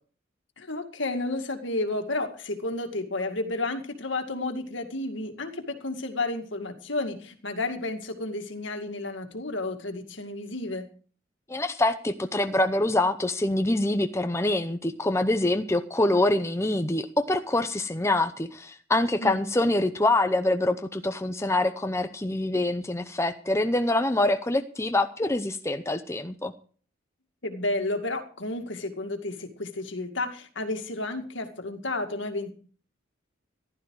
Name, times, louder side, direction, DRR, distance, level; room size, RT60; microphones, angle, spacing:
voice 1, 0.6-10.9 19.2-19.5 27.4-32.5, left 2 dB, 65° left, 7 dB, 2.2 m, -31 dB
voice 2, 11.5-26.5, left 2 dB, 15° left, 8 dB, 0.7 m, -25 dB
15.0 x 12.0 x 4.7 m, 0.42 s
head